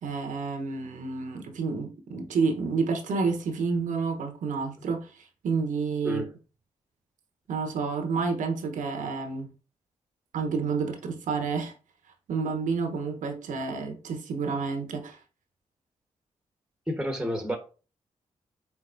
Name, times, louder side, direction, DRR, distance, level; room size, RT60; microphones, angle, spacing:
voice 1, 0.0-6.2 7.5-9.5 10.3-11.7 12.3-15.2, right 4 dB, 75° right, 1.0 m, -29 dB
voice 2, 16.9-17.6, equal, 5° right, 1.2 m, -30 dB
4.5 x 3.9 x 2.6 m
supercardioid pair, 50°, 13 cm